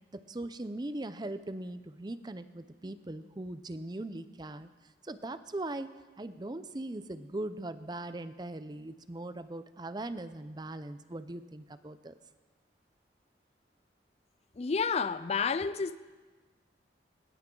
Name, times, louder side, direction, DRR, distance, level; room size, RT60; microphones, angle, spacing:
voice 1, 0.1-4.7 5.0-5.9 6.2-12.2, right 2 dB, 25° right, 12 dB, 0.6 m, -40 dB
voice 2, 14.6-16.0, left 5 dB, 35° left, 15 dB, 0.4 m, -30 dB
19.5 x 19.5 x 3.8 m, 1.3 s
head